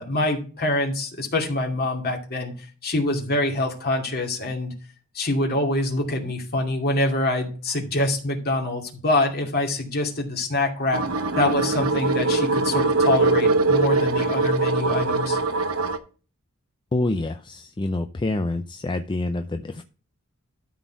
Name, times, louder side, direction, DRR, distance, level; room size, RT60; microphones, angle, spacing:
voice 1, 0.0-2.5 2.8-4.7 5.1-11.0 11.4-15.4, left 2 dB, 45° left, 2 dB, 2.5 m, -25 dB
sound 1, 10.9-16.0, right 3 dB, 75° right, 0.9 m, -22 dB
voice 2, 16.9-19.8, left 2 dB, 20° left, 7 dB, 0.4 m, -27 dB
12.5 x 4.3 x 4.5 m, 0.37 s
head